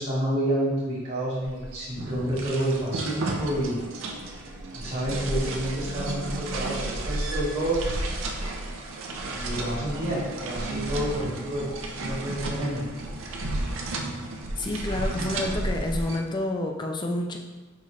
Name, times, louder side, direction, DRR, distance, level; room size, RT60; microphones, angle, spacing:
voice 1, 0.0-3.8 4.7-8.0 9.3-11.6 11.9-12.9, right 1 dB, 45° right, -10 dB, 1.3 m, -29 dB
sound 1, 1.4-16.2, right 2 dB, 65° right, 0.5 m, -32 dB
voice 2, 14.6-17.4, left 1 dB, 20° left, 2 dB, 0.4 m, -29 dB
5.5 x 2.4 x 3.1 m, 1.2 s
head